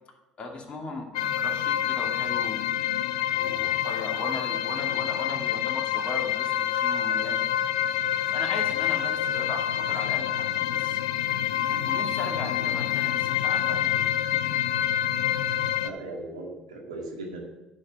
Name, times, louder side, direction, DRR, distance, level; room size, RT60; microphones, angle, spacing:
voice 1, 0.4-2.7 3.3-7.4 8.3-11.0 11.7-14.1, left 3 dB, 35° left, 1 dB, 2.4 m, -37 dB
sound 1, 1.1-15.9, left 11 dB, 75° left, 0.4 m, -27 dB
voice 2, 15.8-17.4, right 2 dB, 85° right, -1 dB, 2.1 m, -37 dB
9.6 x 5.2 x 7.5 m, 1.1 s
hypercardioid pair, 60°, 3 cm